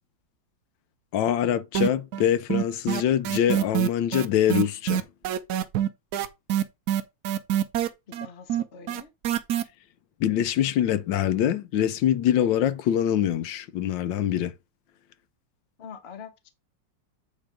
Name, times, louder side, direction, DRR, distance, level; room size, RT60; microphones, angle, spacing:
voice 1, 1.1-5.1 10.2-14.5, left 10 dB, 85° left, 1.4 m, -24 dB
sound 1, 1.7-2.2 2.5-9.6, right 10 dB, 70° right, 1.0 m, -25 dB
voice 2, 8.1-9.1 15.8-16.5, left 6 dB, 40° left, 1.0 m, -44 dB
8.6 x 3.1 x 4.9 m
omnidirectional pair, 2.0 m